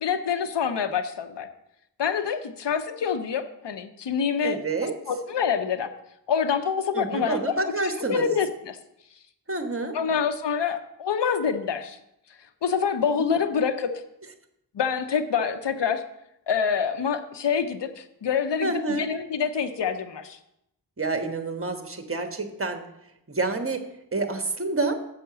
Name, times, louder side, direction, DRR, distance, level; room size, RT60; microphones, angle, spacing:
voice 1, 0.0-1.5 2.0-5.9 6.3-8.8 9.9-12.0 12.6-13.9 14.7-16.0 16.5-20.4, left 7 dB, 85° left, 9 dB, 0.8 m, -26 dB
voice 2, 4.4-4.9 6.9-8.3 9.5-10.0 13.2-13.4 18.6-19.0 21.0-22.9 23.3-23.9 24.1-24.9, right 3 dB, 30° right, 7 dB, 1.2 m, -28 dB
7.4 x 5.6 x 6.8 m, 0.81 s
wide cardioid pair, 65°, 41 cm